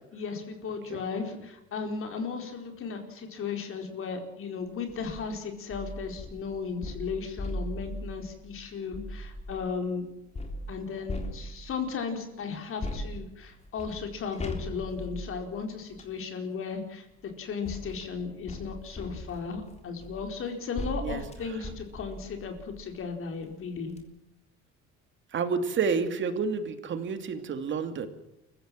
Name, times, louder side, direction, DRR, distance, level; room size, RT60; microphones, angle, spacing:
voice 1, 0.1-10.1 10.7-17.1 17.4-23.9, left 5 dB, 45° left, 5 dB, 4.5 m, -35 dB
sound 1, 4.9-5.2 5.7-9.7 10.4-11.9 12.8-16.2 17.1-23.0 23.5-23.6 23.9-24.0, left 1 dB, 20° left, 3.5 m, -39 dB
voice 2, 25.3-28.1, right 5 dB, 40° right, 9 dB, 2.7 m, -29 dB
28.5 x 16.0 x 7.6 m, 0.88 s
cardioid pair, 140°, 29 cm